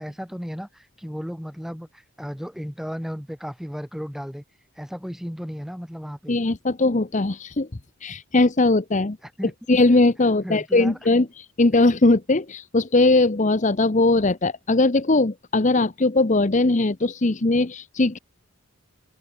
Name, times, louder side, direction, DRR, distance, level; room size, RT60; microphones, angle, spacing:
voice 1, 0.0-4.4 4.8-6.4 9.2-9.5 10.4-10.9, equal, ahead, 2.4 m, -34 dB
voice 2, 6.3-7.7 8.0-9.2 9.7-18.2, left 2 dB, 35° left, 0.9 m, -20 dB
open air
head